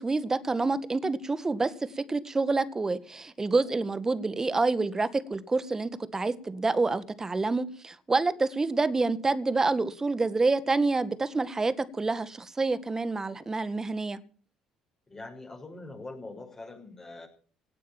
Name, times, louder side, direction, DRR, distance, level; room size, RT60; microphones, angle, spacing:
voice 1, 0.0-14.2, right 3 dB, 25° right, 1.8 m, -27 dB
voice 2, 15.1-17.3, left 2 dB, 25° left, 6.3 m, -43 dB
18.0 x 9.3 x 7.4 m
hypercardioid pair, 60°, 2 cm